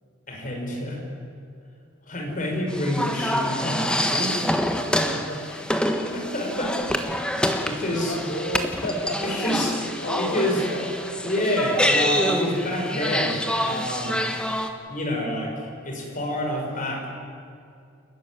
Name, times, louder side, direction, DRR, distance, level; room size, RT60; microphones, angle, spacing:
voice 1, 0.3-1.0 2.1-4.7 6.1-6.9 7.6-8.2 9.2-9.8 10.2-10.6 11.2-14.2 14.9-17.1, left 1 dB, 40° left, 1 dB, 5.2 m, -27 dB
sound 1, 2.7-14.7, equal, 5° left, 1.4 m, -26 dB
voice 2, 4.9-5.8 8.0-9.2 10.0-10.9, left 1 dB, 60° left, -2 dB, 2.8 m, -32 dB
29.5 x 12.5 x 9.8 m, 2.4 s
head